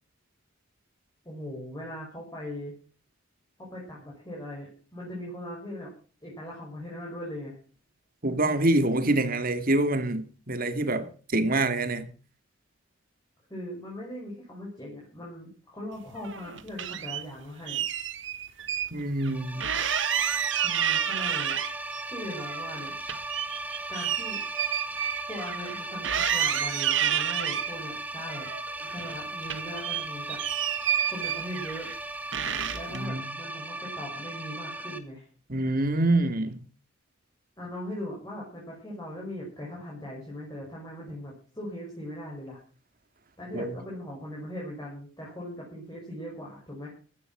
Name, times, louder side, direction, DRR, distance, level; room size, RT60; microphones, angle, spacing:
voice 1, 1.2-2.7 3.6-5.9 6.2-7.6 13.5-17.8 20.6-21.6 22.1-22.9 23.9-24.4 25.3-28.5 28.8-30.4 31.1-31.9 32.7-35.3 37.6-42.6 43.4-46.9, left 1 dB, 20° left, 5.9 m, -39 dB
voice 2, 8.2-11.1 11.3-12.1 18.9-19.7 32.9-33.3 35.5-36.6 43.5-43.7, right 2 dB, 45° right, 2.3 m, -26 dB
sound 1, 16.2-17.2 17.7-18.9 19.2-19.3 19.6-22.0 22.4-25.8 26.0-27.7 28.3-29.2 29.4-32.0 32.3-33.0, right 9 dB, 65° right, 1.4 m, -30 dB
sound 2, 19.3-35.0, right 2 dB, 10° right, 1.6 m, -37 dB
16.0 x 12.0 x 6.1 m
head